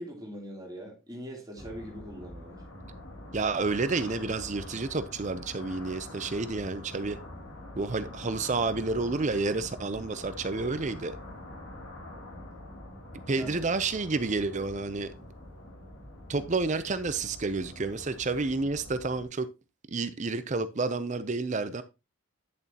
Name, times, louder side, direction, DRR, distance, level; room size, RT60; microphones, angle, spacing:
voice 1, 0.0-2.6 13.3-13.6, equal, 20° right, 3.1 m, -42 dB
sound 1, 1.6-19.3, left 1 dB, 60° left, 2.5 m, -45 dB
voice 2, 3.3-7.2 7.8-11.2 13.3-15.1 16.3-19.5 19.9-21.8, right 3 dB, 35° right, 0.5 m, -30 dB
10.5 x 6.9 x 2.9 m
head